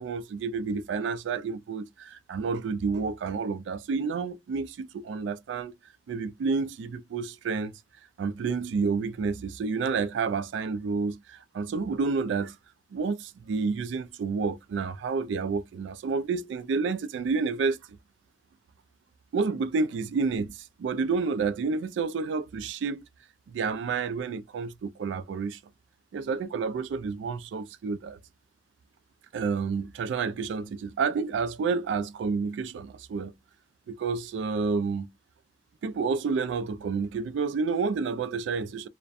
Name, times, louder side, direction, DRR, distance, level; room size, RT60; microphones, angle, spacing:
voice 1, 0.0-5.7 6.1-7.7 8.2-12.6 12.9-17.8 19.3-23.0 23.5-25.6 26.1-28.2 29.3-33.3 33.9-35.1 35.8-38.9, right 4 dB, 80° right, 0.3 m, -29 dB
2.4 x 2.1 x 2.5 m
head